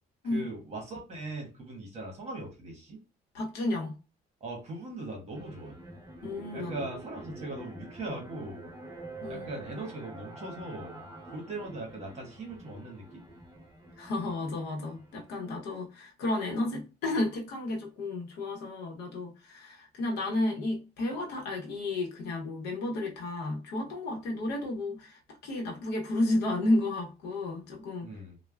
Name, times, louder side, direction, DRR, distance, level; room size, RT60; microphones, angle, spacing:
voice 1, 0.2-3.0 4.4-5.8 6.5-8.7 9.3-11.0 11.3-13.2 28.0-28.4, right 2 dB, 40° right, 1.0 m, -40 dB
voice 2, 3.3-3.9 6.2-6.7 9.2-9.5 14.0-28.1, left 2 dB, 75° left, 0.8 m, -32 dB
sound 1, 5.3-15.8, right 2 dB, 20° right, 0.8 m, -47 dB
3.2 x 2.1 x 2.2 m
cardioid pair, 110°, 17 cm